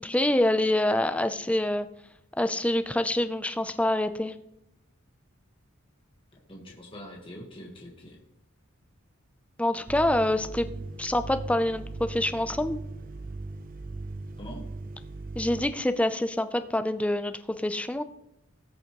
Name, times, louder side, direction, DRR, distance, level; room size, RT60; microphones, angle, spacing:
voice 1, 0.0-1.9 2.4-4.3 9.6-10.7 11.0-12.8 15.4-18.0, left 1 dB, 5° left, 10 dB, 0.4 m, -26 dB
voice 2, 6.5-8.2 14.4-14.7, equal, 25° left, -1 dB, 1.3 m, -43 dB
sound 1, 9.9-15.7, right 2 dB, 40° right, 0.6 m, -39 dB
19.0 x 6.4 x 3.0 m, 0.82 s
head